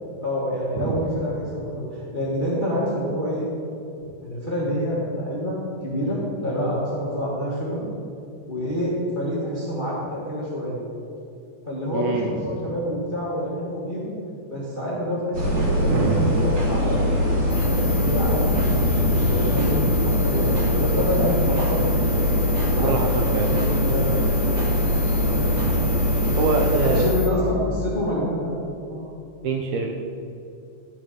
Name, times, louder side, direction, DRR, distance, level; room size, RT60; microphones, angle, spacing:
voice 1, 0.2-3.5 4.2-7.8 8.5-10.8 11.7-14.1 14.5-18.5 19.0-22.1 22.7-24.2 25.3-25.5 26.8-28.6 28.9-29.1, equal, 35° left, -6 dB, 0.7 m, -27 dB
voice 2, 0.8-1.1 11.9-12.7 15.9-16.4 22.7-23.5 25.9-27.2 27.5-27.6 29.4-29.9, right 5 dB, 80° right, 1 dB, 1.7 m, -25 dB
sound 1, 15.3-27.1, left 1 dB, 55° right, 2.6 m, -22 dB
sound 2, 17.5-27.3, left 12 dB, 85° left, 1.4 m, -36 dB
12.5 x 5.4 x 5.0 m, 2.7 s
omnidirectional pair, 3.9 m